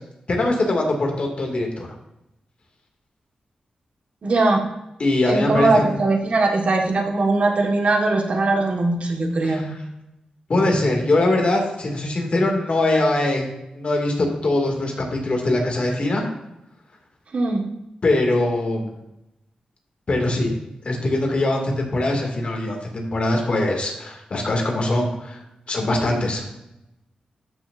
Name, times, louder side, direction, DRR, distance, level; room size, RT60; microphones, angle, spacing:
voice 1, 0.3-1.9 5.0-5.8 9.4-9.6 10.5-13.5 13.8-16.2 18.0-18.9 20.1-20.5 20.9-25.4 25.7-26.4, left 2 dB, 50° left, 1 dB, 2.3 m, -22 dB
voice 2, 4.2-4.6 5.3-9.7 17.3-17.7, right 2 dB, 55° right, 2 dB, 1.5 m, -20 dB
13.0 x 6.2 x 2.6 m, 0.88 s
wide cardioid pair, 85°, 3 cm